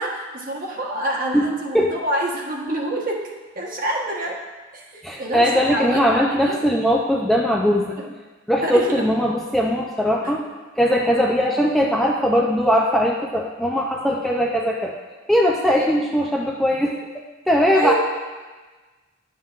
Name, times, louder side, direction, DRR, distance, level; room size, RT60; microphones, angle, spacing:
voice 1, 0.0-3.2 3.5-4.4 4.7-6.6 8.0-8.1 8.6-9.0 10.2-10.4 15.7-16.0 17.7-17.9, right 1 dB, 45° right, -1 dB, 1.2 m, -27 dB
voice 2, 1.3-1.9 5.0-8.0 8.5-10.4 10.8-14.9 15.3-17.0 17.5-17.9, equal, ahead, -1 dB, 0.4 m, -20 dB
11.0 x 7.3 x 2.4 m, 1.3 s
head